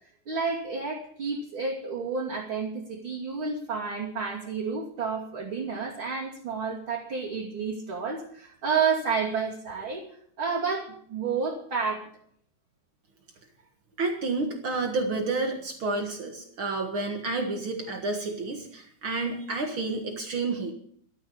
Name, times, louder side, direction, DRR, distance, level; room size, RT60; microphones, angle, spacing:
voice 1, 0.3-10.0 10.4-12.1, right 5 dB, 35° right, -5 dB, 3.0 m, -30 dB
voice 2, 14.0-20.7, right 3 dB, 80° right, 3 dB, 1.1 m, -30 dB
14.5 x 13.0 x 5.5 m, 0.62 s
omnidirectional pair, 5.0 m